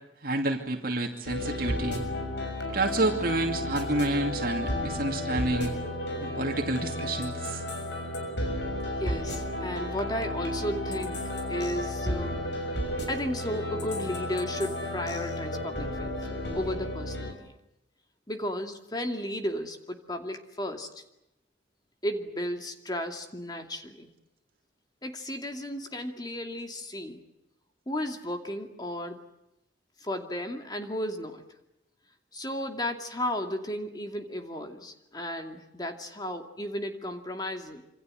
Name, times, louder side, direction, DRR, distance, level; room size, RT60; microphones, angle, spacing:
voice 1, 0.2-2.0 2.7-5.8 6.2-7.6, right 2 dB, 50° right, 3 dB, 2.6 m, -29 dB
sound 1, 1.3-17.3, left 1 dB, 65° left, 6.7 m, -33 dB
voice 2, 9.0-11.2 11.5-12.4 12.8-17.6 18.3-21.0 22.0-24.1 25.0-27.2 27.9-29.2 30.0-31.4 32.3-37.8, equal, 20° left, 5 dB, 2.5 m, -34 dB
27.0 x 26.5 x 7.8 m, 0.86 s
head